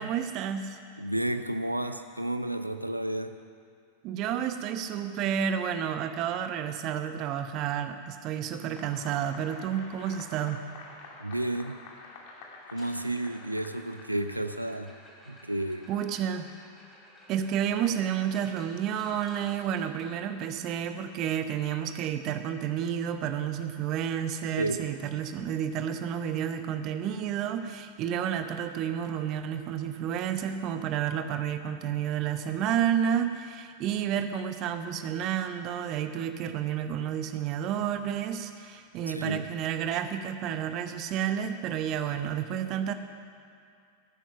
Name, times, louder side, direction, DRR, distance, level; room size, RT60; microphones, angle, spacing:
voice 1, 0.0-0.8 4.0-10.6 15.9-16.5 17.3-42.9, right 9 dB, 40° right, 9 dB, 0.9 m, -30 dB
voice 2, 1.0-3.4 11.2-11.8 12.7-15.0 15.3-15.9 24.6-24.8 39.1-39.5, right 1 dB, 85° right, 9 dB, 0.6 m, -31 dB
sound 1, 8.7-14.2, left 3 dB, 45° left, 2.2 m, -48 dB
sound 2, 12.6-20.6 22.9-23.0 23.2-23.5 23.9-24.0 24.6-24.7 26.6-26.7, equal, 10° left, 4.1 m, -54 dB
16.0 x 9.3 x 5.8 m, 2.4 s
figure-of-eight pair, 90°, 0 cm